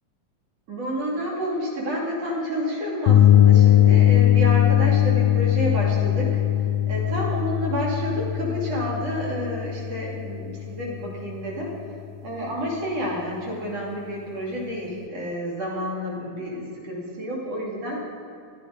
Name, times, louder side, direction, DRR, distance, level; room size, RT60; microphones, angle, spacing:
voice 1, 0.7-6.4 6.9-11.7 12.2-18.0, equal, 55° right, -3 dB, 3.7 m, -29 dB
sound 1, 3.1-10.8, left 11 dB, 75° left, 1.5 m, -19 dB
15.5 x 12.0 x 5.2 m, 2.5 s
omnidirectional pair, 3.5 m